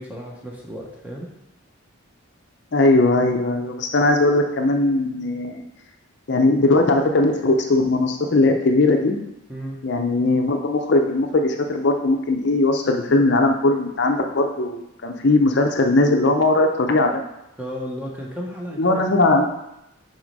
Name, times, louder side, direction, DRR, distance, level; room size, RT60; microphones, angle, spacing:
voice 1, 0.0-1.3 9.5-9.8 17.6-19.0, equal, 5° right, -2 dB, 0.9 m, -33 dB
voice 2, 2.7-5.6 6.3-9.2 9.8-17.2 18.8-19.6, left 2 dB, 50° left, 4 dB, 0.6 m, -19 dB
6.0 x 4.3 x 5.3 m, 0.87 s
head